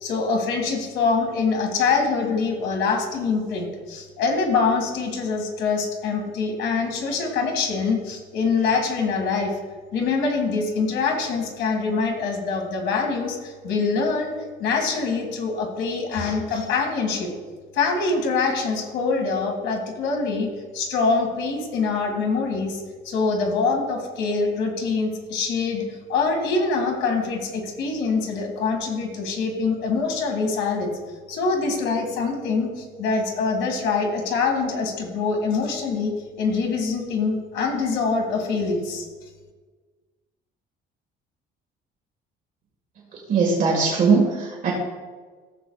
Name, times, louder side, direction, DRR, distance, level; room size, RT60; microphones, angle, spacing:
voice 1, 0.0-9.5 9.9-14.3 14.6-17.3 17.7-20.5 20.7-22.8 23.0-25.8 26.1-30.9 31.3-36.1 36.4-39.0, left 4 dB, 70° left, 2 dB, 2.1 m, -24 dB
voice 2, 43.3-44.7, right 4 dB, 40° right, -2 dB, 1.6 m, -20 dB
15.5 x 7.0 x 2.4 m, 1.4 s
cardioid pair, 170°, 20 cm